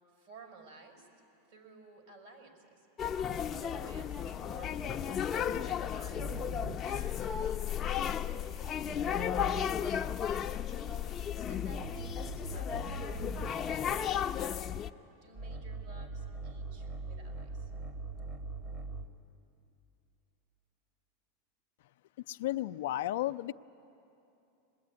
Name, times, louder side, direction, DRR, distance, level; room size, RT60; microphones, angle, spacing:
voice 1, 0.1-1.1 1.5-2.9 3.4-9.3 9.7-10.8 11.5-14.7 15.2-17.7, right 4 dB, 65° right, 2 dB, 5.5 m, -55 dB
sound 1, 3.0-14.9, left 9 dB, 30° left, 0.6 m, -34 dB
sound 2, 4.2-7.0 9.0-9.9 10.7-13.7 15.3-19.2, right 3 dB, 35° right, 1.7 m, -43 dB
voice 2, 22.3-23.5, left 15 dB, 70° left, 11 dB, 0.5 m, -33 dB
24.5 x 20.5 x 9.6 m, 2.8 s
hypercardioid pair, 120°, 0 cm